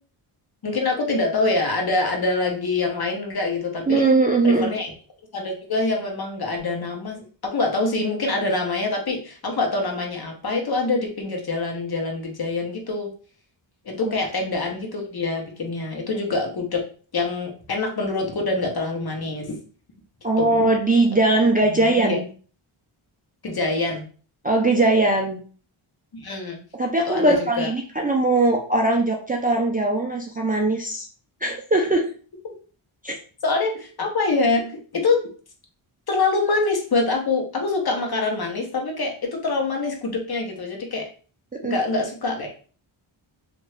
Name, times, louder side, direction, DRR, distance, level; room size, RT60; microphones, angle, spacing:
voice 1, 0.6-4.1 4.4-4.9 5.3-13.1 13.8-16.8 17.1-19.6 20.4-20.6 21.8-22.2 23.4-24.0 26.1-26.6 27.1-27.7 33.4-34.7 34.9-35.2 36.1-41.1 41.6-42.5, left 3 dB, 50° left, 2 dB, 0.9 m, -25 dB
voice 2, 3.9-4.7 20.2-22.2 24.4-25.4 26.8-31.1 31.4-32.1 33.0-33.1 41.6-41.8, right 2 dB, 20° right, -1 dB, 0.4 m, -20 dB
2.8 x 2.5 x 3.2 m, 0.40 s
wide cardioid pair, 110°, 49 cm